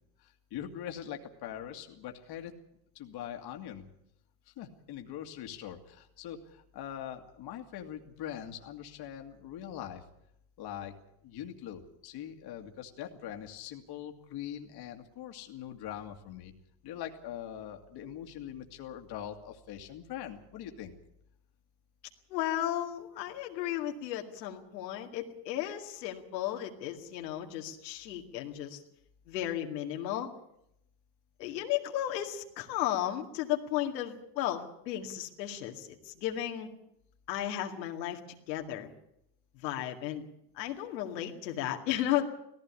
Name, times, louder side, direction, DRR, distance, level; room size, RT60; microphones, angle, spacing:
voice 1, 0.2-2.6 2.9-3.9 4.5-10.0 10.6-10.9 11.2-16.5 16.8-20.9, left 10 dB, 50° left, 5 dB, 2.3 m, -42 dB
voice 2, 22.3-28.8 29.3-30.3 31.4-36.7 37.3-38.9 39.5-40.3 40.5-42.3, left 12 dB, 85° left, 2 dB, 2.3 m, -34 dB
17.5 x 15.5 x 9.8 m, 0.78 s
supercardioid pair, 110°, 49 cm